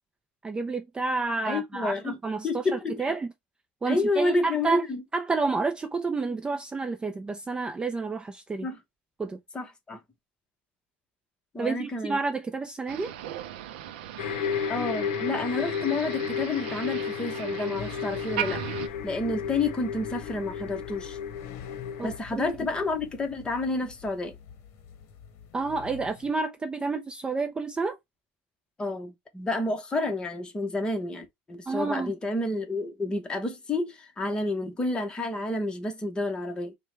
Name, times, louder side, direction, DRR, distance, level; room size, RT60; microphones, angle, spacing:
voice 1, 0.4-2.7 3.0-3.3 3.8-4.8 5.1-8.7 9.2-9.4 11.6-13.1 22.0-22.6 25.5-28.0 31.7-32.1, right 4 dB, 15° right, 0.5 m, -30 dB
voice 2, 1.4-2.2 2.4-3.1 3.9-5.0 8.6-8.8 9.5-10.0 11.5-12.2 14.7-18.6 19.0-21.2 22.0-24.4 28.8-36.7, left 2 dB, 15° left, 1.0 m, -30 dB
Motor vehicle (road), 12.9-18.9, right 11 dB, 90° right, 0.5 m, -38 dB
sound 1, 14.2-22.2, left 7 dB, 85° left, 0.6 m, -33 dB
sound 2, 17.8-26.3, left 7 dB, 60° left, 0.9 m, -45 dB
4.3 x 2.2 x 3.2 m
supercardioid pair, 120°, 5 cm